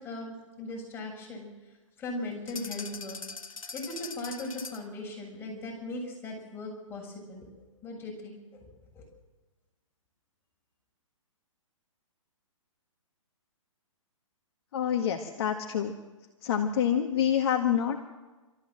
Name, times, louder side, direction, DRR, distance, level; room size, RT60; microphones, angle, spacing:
voice 1, 0.0-1.5 2.0-3.2 3.7-9.0, left 2 dB, 15° left, -2 dB, 7.5 m, -39 dB
sound 1, 2.5-5.0, left 4 dB, 90° left, 1.5 m, -41 dB
voice 2, 14.7-16.0 16.4-18.0, left 9 dB, 50° left, 3 dB, 1.8 m, -27 dB
27.0 x 14.0 x 7.7 m, 1.2 s
hypercardioid pair, 130°, 17 cm